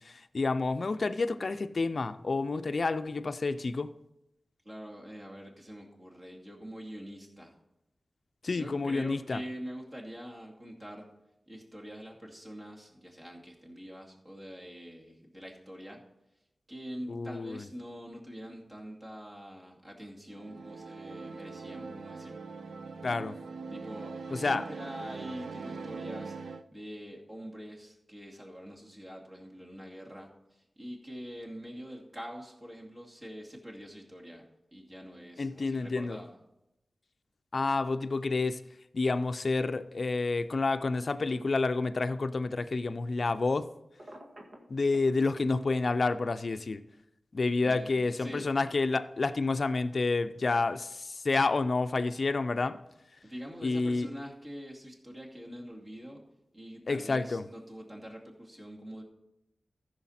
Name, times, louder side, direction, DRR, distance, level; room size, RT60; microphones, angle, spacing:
voice 1, 0.0-3.9 8.4-9.4 17.1-17.7 23.0-23.4 24.3-24.6 35.4-36.2 37.5-38.6 38.9-43.7 44.7-46.8 47.3-52.8 53.6-54.1 56.9-57.4, left 3 dB, 55° left, 0.5 m, -29 dB
voice 2, 4.6-7.6 8.5-11.1 11.5-16.0 16.7-22.4 23.7-24.1 24.4-36.4 47.6-48.5 53.2-56.2 56.5-59.0, equal, 30° right, 2.4 m, -45 dB
sound 1, 20.3-26.6, right 4 dB, 85° right, 0.5 m, -42 dB
Telephone, 44.0-45.1, right 1 dB, 60° right, 1.8 m, -48 dB
14.5 x 6.5 x 4.2 m
wide cardioid pair, 95°, 0 cm